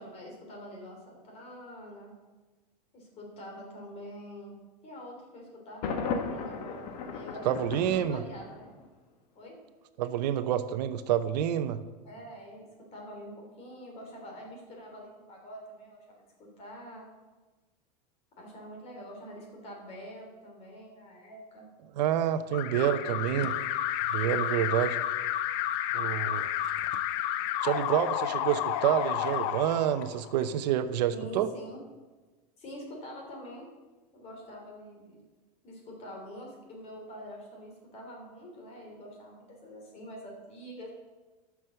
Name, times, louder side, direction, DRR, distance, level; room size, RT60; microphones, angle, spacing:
voice 1, 0.0-2.1 2.9-4.5 4.8-6.9 7.1-8.7 9.3-9.5 12.0-17.1 18.4-21.7 31.1-31.8 32.6-33.7 34.1-35.2 35.6-40.9, equal, 30° left, 0 dB, 3.2 m, -45 dB
Thunder, 5.8-8.8, left 4 dB, 70° left, 1.3 m, -35 dB
voice 2, 7.4-8.2 10.0-11.8 22.0-23.5 24.1-25.0 25.9-26.5 27.6-31.5, right 10 dB, 85° right, 11 dB, 0.8 m, -28 dB
Alarm, 22.5-30.4, left 12 dB, 50° left, 0.5 m, -31 dB
11.0 x 6.3 x 6.9 m, 1.2 s
supercardioid pair, 155°, 21 cm